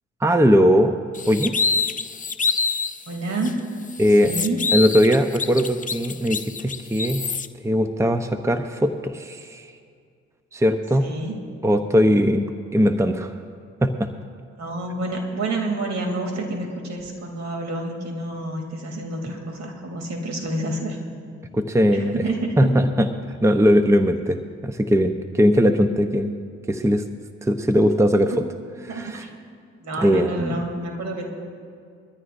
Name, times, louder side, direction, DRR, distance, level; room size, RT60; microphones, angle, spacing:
voice 1, 0.2-1.0 1.3-1.5 4.0-4.3 4.7-7.3 7.6-9.7 10.5-11.1 11.6-13.4 13.8-14.1 21.5-22.3 22.6-26.3 26.7-27.0 27.4-28.4 28.8-29.2 30.0-30.6, equal, 10° right, 8 dB, 0.8 m, -19 dB
sound 1, 1.1-3.0 3.4-3.5 3.9-7.5, left 5 dB, 25° left, 0.6 m, -26 dB
voice 2, 3.1-3.6 4.2-4.6 11.0-11.4 14.6-21.0 21.9-22.7 28.9-29.3 29.8-31.3, right 2 dB, 65° right, 2 dB, 3.0 m, -28 dB
22.0 x 14.0 x 2.6 m, 2.2 s
supercardioid pair, 60°, 29 cm